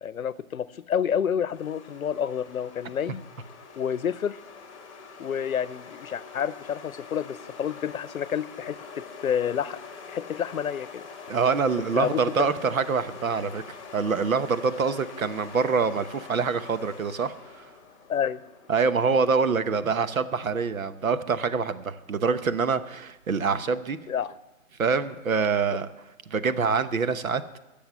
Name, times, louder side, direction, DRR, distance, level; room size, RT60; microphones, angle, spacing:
voice 1, 0.0-3.2 3.8-4.4 5.2-9.8 10.1-11.0 12.0-12.5 18.1-18.4 24.1-24.3, left 8 dB, 75° left, 18 dB, 0.8 m, -29 dB
sound 1, 1.5-19.3, left 5 dB, 20° left, 1.5 m, -45 dB
voice 2, 11.3-13.6 13.9-17.7 18.7-24.0 24.8-25.9 26.3-27.4, right 5 dB, 75° right, 11 dB, 1.1 m, -25 dB
13.0 x 6.9 x 8.1 m, 1.0 s
hypercardioid pair, 165°, 41 cm